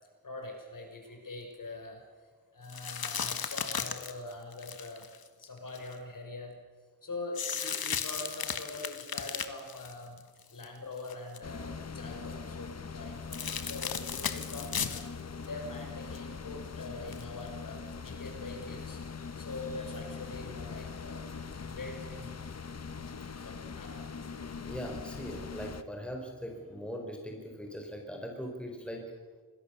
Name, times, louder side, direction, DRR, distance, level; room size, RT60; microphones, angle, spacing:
voice 1, 0.2-2.0 2.5-5.1 5.4-6.6 7.0-21.2 21.6-22.3 23.1-24.1, left 2 dB, 65° left, 2 dB, 5.9 m, -43 dB
sound 1, 2.7-5.9 7.3-10.6 11.0-11.4 13.3-15.1 15.4-15.5 17.1-17.2, left 7 dB, 80° left, 1.6 m, -35 dB
sound 2, 11.4-25.8, left 5 dB, 45° left, 1.1 m, -42 dB
voice 2, 23.2-23.6 24.6-29.1, equal, 5° left, 2 dB, 4.3 m, -41 dB
27.0 x 20.5 x 6.9 m, 1.4 s
wide cardioid pair, 135°, 36 cm